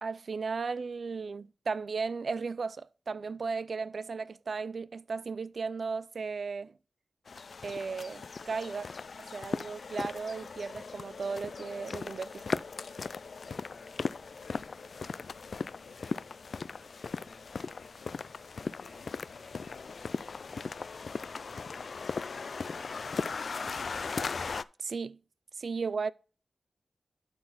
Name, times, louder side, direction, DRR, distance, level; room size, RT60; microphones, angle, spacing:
voice 1, 0.0-6.7 7.6-8.8 9.3-12.6 24.8-25.2 25.6-26.1, right 4 dB, 70° right, 0.4 m, -35 dB
sound 1, 7.3-24.6, left 4 dB, 70° left, 0.3 m, -38 dB
voice 2, 8.6-9.5 13.3-14.0 14.2-21.8 22.9-24.1, left 3 dB, 90° left, 2.4 m, -58 dB
12.0 x 4.1 x 4.0 m
cardioid pair, 50°, 0 cm